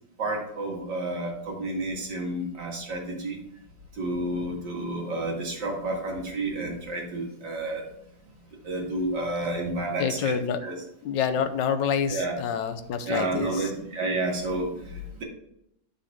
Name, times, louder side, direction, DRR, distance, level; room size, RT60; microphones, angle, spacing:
voice 1, 0.2-3.4 4.0-7.9 8.6-10.3 10.6-10.8 12.1-12.3 13.1-15.2, right 2 dB, 65° right, -1 dB, 2.6 m, -30 dB
voice 2, 10.0-10.6 11.0-13.7, left 7 dB, 75° left, 9 dB, 1.4 m, -27 dB
9.7 x 6.1 x 3.6 m, 0.78 s
omnidirectional pair, 2.0 m